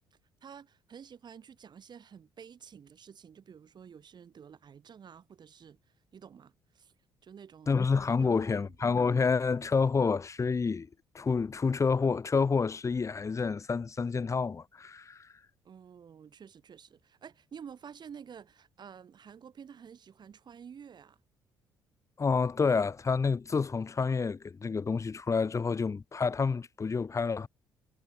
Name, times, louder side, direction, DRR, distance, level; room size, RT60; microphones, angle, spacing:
voice 1, 0.1-6.9 7.2-7.7 8.2-8.8 15.6-21.2, right 7 dB, 40° right, 4.1 m, -50 dB
voice 2, 7.7-10.9 11.1-15.3 22.2-27.5, left 5 dB, 25° left, 1.4 m, -28 dB
figure-of-eight pair, 45°, 11 cm